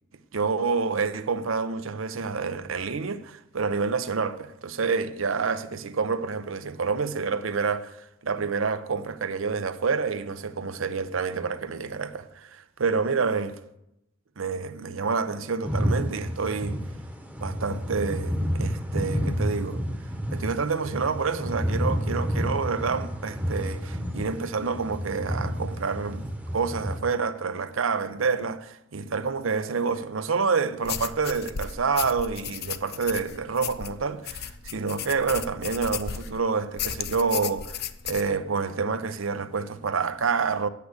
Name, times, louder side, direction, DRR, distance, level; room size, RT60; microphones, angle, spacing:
voice 1, 0.3-8.0 8.2-13.6 14.4-16.8 17.4-19.8 20.3-26.3 26.5-40.7, right 5 dB, 80° right, 0.7 m, -28 dB
sound 1, 15.6-27.0, equal, 5° right, 0.9 m, -30 dB
sound 2, 30.8-36.4 36.8-38.3, left 9 dB, 50° left, 0.6 m, -34 dB
8.4 x 8.2 x 8.2 m
head